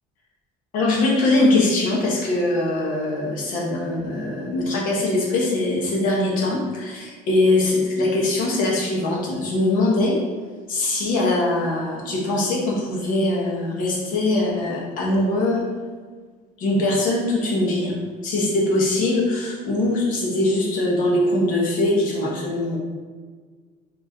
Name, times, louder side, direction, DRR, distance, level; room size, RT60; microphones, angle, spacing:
voice 1, 0.7-10.2 10.7-15.6 16.6-17.9 18.2-22.8, left 2 dB, 50° left, -3 dB, 1.2 m, -22 dB
4.5 x 3.0 x 3.6 m, 1.5 s
cardioid pair, 175°, 18 cm